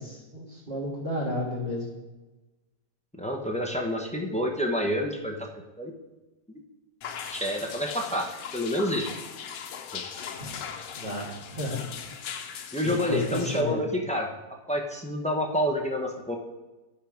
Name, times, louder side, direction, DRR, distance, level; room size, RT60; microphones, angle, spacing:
voice 1, 0.0-1.9 10.3-10.5 10.9-11.8 12.8-13.8, left 1 dB, 30° right, -7 dB, 2.0 m, -32 dB
voice 2, 3.2-5.4 5.8-5.9 7.3-8.3 8.5-9.1 9.9-10.0 12.7-14.3 14.7-16.4, equal, 10° left, 1 dB, 0.4 m, -28 dB
sound 1, 7.0-13.6, left 7 dB, 85° left, 1.4 m, -39 dB
11.5 x 5.9 x 5.1 m, 1.1 s
omnidirectional pair, 1.8 m